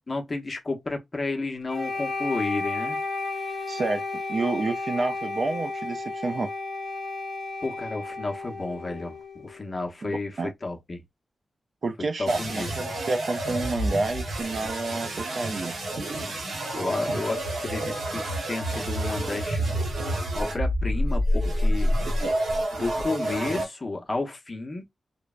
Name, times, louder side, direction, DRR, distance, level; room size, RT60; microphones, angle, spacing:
voice 1, 0.0-3.0 7.6-11.0 12.2-12.7 16.7-19.8 20.3-21.9 22.7-24.8, left 3 dB, 30° left, 0.7 m, -32 dB
Wind instrument woodwind instrument, 1.7-9.7, left 3 dB, 50° left, 1.0 m, -33 dB
voice 2, 3.7-6.5 10.0-10.5 11.8-15.8, right 3 dB, 50° right, 0.4 m, -29 dB
sound 1, 12.3-23.7, equal, 80° right, 0.9 m, -28 dB
3.2 x 2.0 x 2.3 m
wide cardioid pair, 140°, 0 cm